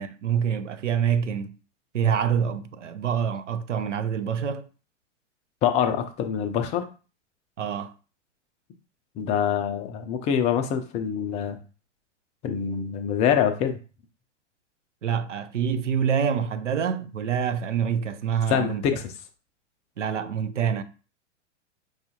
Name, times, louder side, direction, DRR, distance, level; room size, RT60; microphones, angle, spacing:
voice 1, 0.0-1.6 1.9-4.7 7.6-7.9 15.0-18.8 20.0-20.8, right 7 dB, 85° right, 0.5 m, -26 dB
voice 2, 5.6-6.9 9.2-11.6 12.4-13.8 18.5-19.1, left 8 dB, 20° left, 0.4 m, -25 dB
4.8 x 2.4 x 2.8 m
figure-of-eight pair, 100°, 36 cm